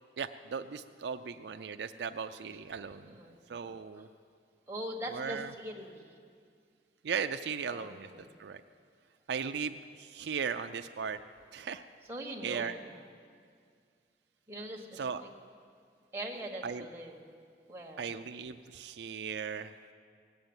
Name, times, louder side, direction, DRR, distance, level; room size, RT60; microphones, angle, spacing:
voice 1, 0.2-3.1 3.5-4.1 5.1-5.5 7.0-8.1 8.4-8.6 9.3-11.2 11.5-11.8 12.4-12.7 15.0-15.2 16.6-16.9 18.0-19.7, right 6 dB, 75° right, 8 dB, 0.4 m, -37 dB
voice 2, 2.9-3.3 4.0-4.1 4.7-6.0 7.7-8.3 12.1-12.9 14.5-15.1 16.1-17.2 17.7-18.1, right 1 dB, 15° right, -1 dB, 1.4 m, -42 dB
18.0 x 7.9 x 8.8 m, 2.2 s
head